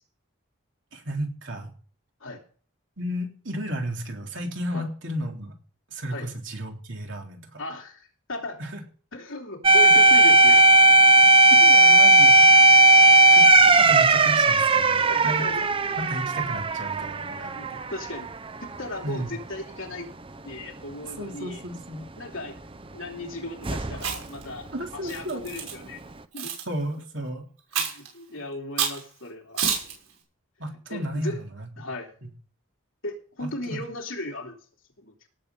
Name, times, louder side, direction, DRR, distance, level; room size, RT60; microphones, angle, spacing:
voice 1, 0.9-1.7 3.0-5.5 5.9-7.6 8.6-8.8 11.5-12.8 13.3-15.5 16.0-17.8 19.0-19.3 21.2-22.0 24.7-25.4 26.7-27.5 27.7-27.8 30.6-31.7 32.2-32.3 33.4-33.8, right 1 dB, 60° right, 1 dB, 3.4 m, -33 dB
voice 2, 7.6-8.6 9.1-10.6 15.0-16.0 17.3-18.3 18.8-20.1 20.4-21.6 22.2-22.6 22.9-24.7 24.9-26.0 26.3-26.5 27.8-29.7 30.9-31.4 31.8-32.1 33.0-34.6 35.0-35.1, left 1 dB, 70° left, 1 dB, 3.2 m, -36 dB
sound 1, 9.6-18.3 18.6-18.8 23.6-24.2, right 2 dB, 25° right, 0.7 m, -16 dB
Chewing mastication, 23.9-24.4 25.1-25.7 26.4-26.6 27.7-28.1 28.8-29.0 29.6-29.9, right 7 dB, 90° right, 5.9 m, -28 dB
18.0 x 7.5 x 5.3 m, 0.42 s
head